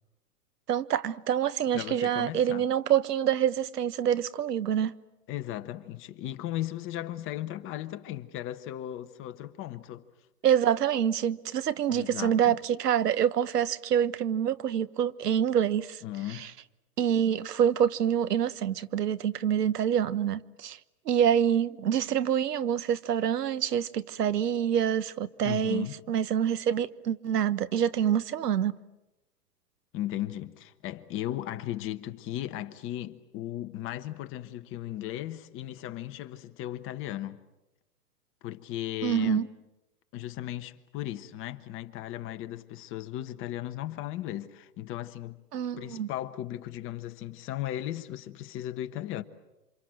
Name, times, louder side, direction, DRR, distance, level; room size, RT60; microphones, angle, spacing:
voice 1, 0.7-4.9 10.4-16.0 16.3-16.5 17.0-20.8 21.1-28.8 39.0-39.4 45.5-46.1, right 9 dB, 80° right, 1.2 m, -26 dB
voice 2, 1.7-2.6 5.3-10.0 11.9-12.6 16.0-16.5 25.4-26.0 29.9-37.4 38.4-39.5 40.1-45.4 45.8-49.2, left 13 dB, 25° left, 1.2 m, -36 dB
28.0 x 26.5 x 7.8 m
hypercardioid pair, 130°, 47 cm